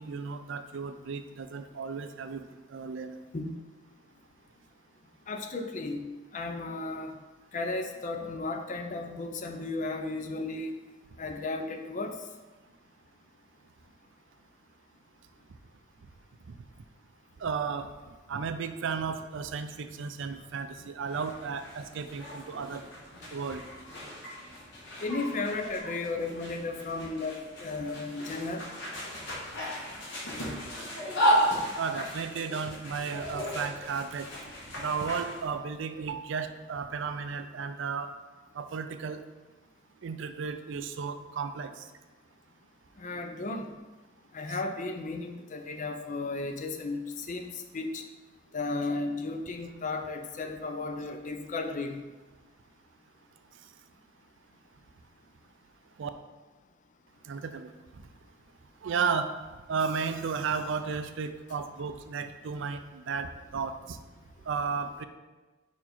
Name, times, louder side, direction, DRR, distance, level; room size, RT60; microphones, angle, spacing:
voice 1, 0.0-3.2 17.4-17.9 18.3-22.8 23.3-23.6 31.8-34.3 34.8-38.1 38.5-39.2 40.0-41.9 44.5-44.6 56.0-56.1 57.2-57.7 58.8-59.3 59.7-64.0 64.5-65.0, right 5 dB, 65° right, 9 dB, 0.4 m, -34 dB
voice 2, 5.3-6.0 6.3-7.1 7.5-10.7 11.2-12.2 25.0-28.6 43.0-43.7 44.3-48.0 48.5-52.0, left 3 dB, 40° left, 6 dB, 0.5 m, -34 dB
sound 1, 21.1-35.4, equal, 65° left, 1.9 m, -34 dB
5.2 x 4.5 x 4.3 m, 1.2 s
head